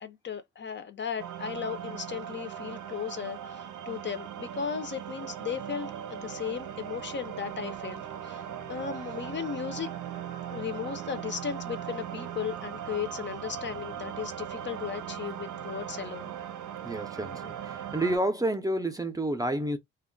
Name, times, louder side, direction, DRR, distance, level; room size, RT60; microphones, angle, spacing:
voice 1, 0.0-9.9 10.5-16.3, left 7 dB, 40° left, 0.6 m, -36 dB
sound 1, 1.2-18.2, right 9 dB, 80° right, 0.6 m, -39 dB
voice 2, 16.8-19.8, right 1 dB, 10° right, 0.5 m, -29 dB
2.2 x 2.0 x 3.7 m
cardioid pair, 90°, 30 cm